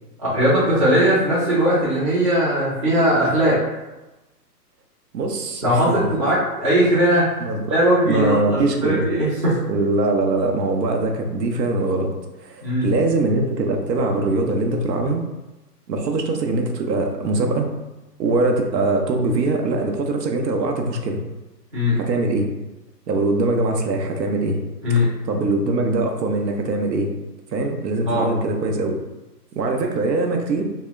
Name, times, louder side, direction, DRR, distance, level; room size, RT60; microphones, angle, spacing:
voice 1, 0.2-3.6 5.6-7.3 7.7-9.5 12.6-12.9 21.7-22.0 24.8-25.1 28.1-28.3, equal, 20° right, -10 dB, 0.5 m, -19 dB
voice 2, 5.1-6.0 7.4-7.6 8.0-9.0 9.7-12.1 12.4-15.2 15.9-17.7 18.2-21.2 22.0-22.5 23.1-24.6 24.9-27.1 27.5-29.0 29.6-30.6, right 2 dB, 80° right, 3 dB, 0.6 m, -22 dB
2.1 x 2.0 x 3.4 m, 1.1 s
hypercardioid pair, 155°, 49 cm